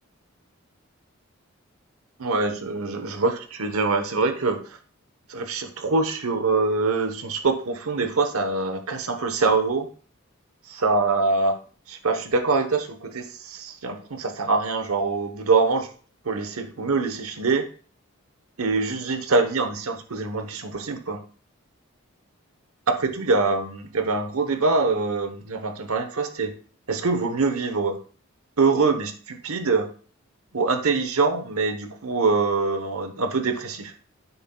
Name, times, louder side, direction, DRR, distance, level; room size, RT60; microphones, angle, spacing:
voice 1, 2.2-4.6 5.3-9.9 10.7-11.6 11.9-15.9 16.2-17.6 18.6-21.2 22.9-26.6 26.9-28.0 28.6-29.9 30.5-33.9, right 3 dB, 85° right, 8 dB, 1.0 m, -24 dB
10.0 x 8.0 x 2.3 m, 0.40 s
head